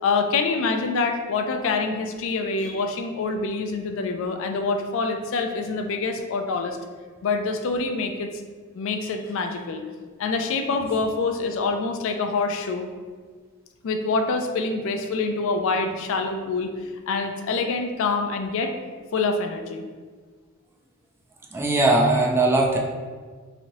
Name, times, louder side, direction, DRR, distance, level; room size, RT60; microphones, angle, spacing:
voice 1, 0.0-6.8 7.2-8.3 8.7-9.8 10.2-12.9 13.8-16.7 17.1-18.7 19.1-19.8, left 4 dB, 65° left, 6 dB, 0.3 m, -26 dB
voice 2, 21.5-22.8, right 2 dB, 10° right, -1 dB, 0.4 m, -19 dB
3.0 x 2.8 x 2.6 m, 1.5 s
head